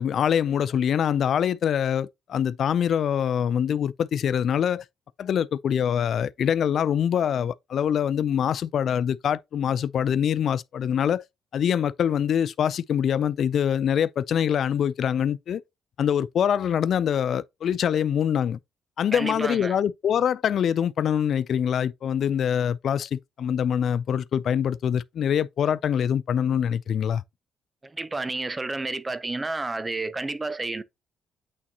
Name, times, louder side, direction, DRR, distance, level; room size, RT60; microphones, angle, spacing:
voice 1, 0.0-4.8 5.2-11.2 11.5-15.6 16.0-18.6 19.0-27.2, left 8 dB, 65° left, 0.4 m, -24 dB
voice 2, 19.1-19.7 27.8-30.8, right 2 dB, 20° right, 0.7 m, -30 dB
8.6 x 4.2 x 2.8 m
cardioid pair, 90°, 0 cm